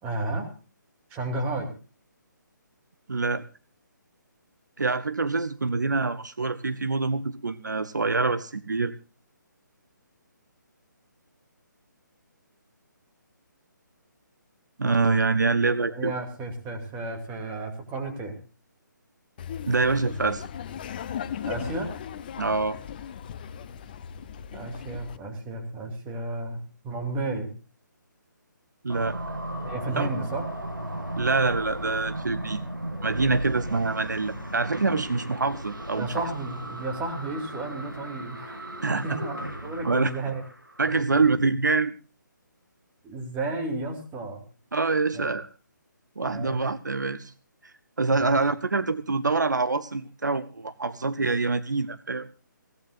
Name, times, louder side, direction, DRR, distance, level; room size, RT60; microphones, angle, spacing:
voice 1, 0.0-0.5 1.1-1.7 15.9-18.4 21.5-21.9 24.5-27.5 29.6-30.4 35.9-40.4 40.9-41.0 43.0-44.4 45.1-45.2 46.2-46.6 48.1-48.4, right 2 dB, 15° right, 3 dB, 2.6 m, -33 dB
voice 2, 3.1-3.4 4.8-8.9 14.8-16.1 19.7-20.4 22.4-22.8 28.8-29.2 30.0-30.1 31.2-32.6 33.0-36.3 38.8-39.2 39.8-40.1 40.8-41.9 44.7-45.5 46.2-47.3 48.0-52.3, right 3 dB, 65° right, 13 dB, 0.9 m, -25 dB
Laughter, 19.4-25.2, left 8 dB, 25° left, 0.7 m, -37 dB
sound 1, 28.9-40.9, right 1 dB, 85° right, 2.7 m, -36 dB
22.5 x 16.5 x 2.5 m, 0.36 s
figure-of-eight pair, 140°, 11 cm